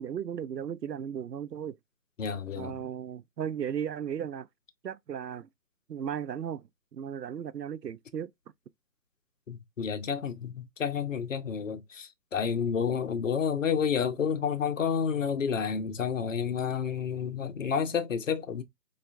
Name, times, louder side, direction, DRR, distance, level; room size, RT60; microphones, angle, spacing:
voice 1, 0.0-1.8 2.6-4.5 4.8-5.5 5.9-6.6 6.9-8.3, right 8 dB, 80° right, 0.5 m, -35 dB
voice 2, 2.2-2.7 9.5-18.6, left 7 dB, 50° left, 0.6 m, -30 dB
4.3 x 2.4 x 2.4 m
figure-of-eight pair, 140°, 49 cm